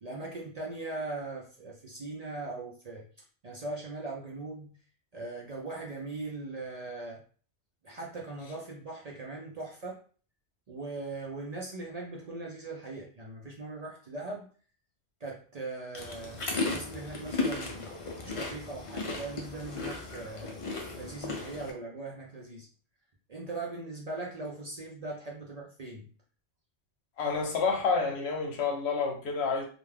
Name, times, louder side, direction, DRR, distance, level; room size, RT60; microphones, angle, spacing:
voice 1, 0.0-3.0 3.4-4.7 5.1-7.2 7.8-10.0 10.7-14.5 15.2-17.9 18.2-20.6 21.0-22.7 23.3-26.1, right 2 dB, 50° right, -3 dB, 0.5 m, -40 dB
sound 1, 15.9-21.7, left 3 dB, 45° left, 0.4 m, -35 dB
voice 2, 27.2-29.6, left 4 dB, 75° left, 2 dB, 0.9 m, -29 dB
2.4 x 2.2 x 3.2 m, 0.42 s
omnidirectional pair, 1.1 m